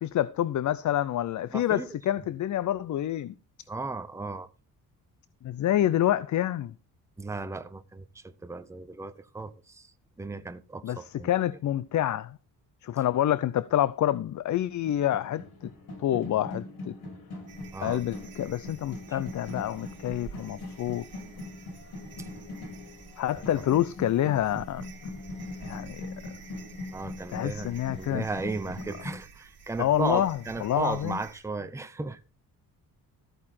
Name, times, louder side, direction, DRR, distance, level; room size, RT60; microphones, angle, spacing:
voice 1, 0.0-3.3 5.4-6.7 10.8-12.4 12.8-15.7 16.0-17.0 17.8-21.1 23.2-24.9 25.6-26.1 27.3-28.2 29.8-31.2, left 12 dB, 50° left, 0.5 m, -27 dB
voice 2, 1.5-1.9 3.7-4.5 7.2-9.9 10.2-11.3 17.7-18.0 19.1-19.2 26.9-32.2, right 3 dB, 10° right, 0.7 m, -35 dB
sound 1, 14.6-29.1, left 2 dB, 80° left, 6.8 m, -41 dB
sound 2, 17.5-31.4, right 5 dB, 40° right, 3.4 m, -50 dB
14.0 x 8.6 x 4.3 m
cardioid pair, 135°, 37 cm